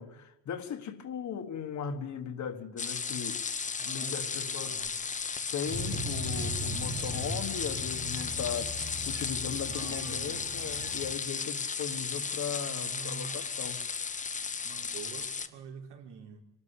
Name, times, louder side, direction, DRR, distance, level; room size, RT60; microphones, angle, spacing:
voice 1, 0.0-3.4 3.9-4.8 5.5-8.7 9.0-13.8, left 7 dB, 45° left, 1.5 m, -38 dB
sound 1, 2.8-15.5, left 5 dB, 20° left, 0.8 m, -35 dB
voice 2, 3.8-5.0 9.4-10.5 12.2-13.5 14.6-16.4, right 7 dB, 80° right, 4.0 m, -47 dB
sound 2, 5.7-11.1, right 1 dB, 10° right, 1.7 m, -39 dB
24.5 x 13.0 x 8.6 m
cardioid pair, 170°, 40 cm